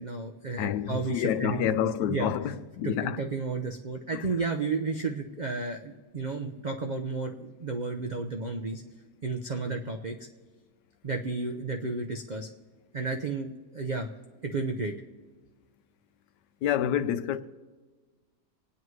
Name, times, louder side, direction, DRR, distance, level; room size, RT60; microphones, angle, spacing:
voice 1, 0.0-1.7 2.0-2.3 2.8-8.8 9.2-10.2 11.0-12.5 12.9-14.1 14.4-14.9, right 3 dB, 70° right, 0.4 m, -32 dB
voice 2, 0.6-3.2 4.1-4.2 16.6-17.4, left 10 dB, 90° left, 1.2 m, -28 dB
26.5 x 9.5 x 3.2 m
omnidirectional pair, 1.8 m